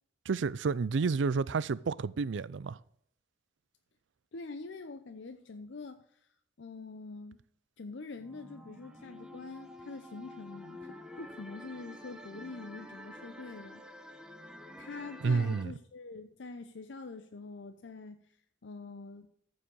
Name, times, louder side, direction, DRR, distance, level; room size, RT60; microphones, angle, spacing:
voice 1, 0.3-2.8 15.2-15.7, right 4 dB, 70° right, 0.4 m, -30 dB
voice 2, 4.3-6.3 6.6-7.4 7.8-13.8 14.8-18.3 18.6-19.3, left 3 dB, 70° left, 0.6 m, -45 dB
sound 1, 8.2-15.6, left 1 dB, 5° right, 0.9 m, -49 dB
14.0 x 4.9 x 6.4 m
head